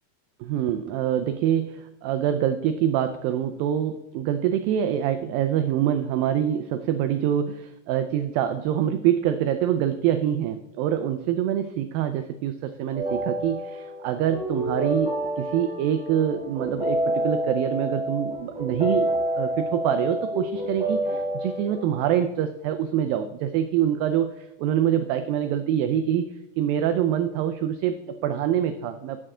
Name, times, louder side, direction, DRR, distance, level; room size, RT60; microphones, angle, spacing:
voice 1, 0.4-26.3 26.6-29.2, right 10 dB, 90° right, 8 dB, 2.0 m, -25 dB
sound 1, 12.9-22.1, right 1 dB, ahead, 3.1 m, -28 dB
8.9 x 8.8 x 3.7 m, 0.91 s
omnidirectional pair, 4.6 m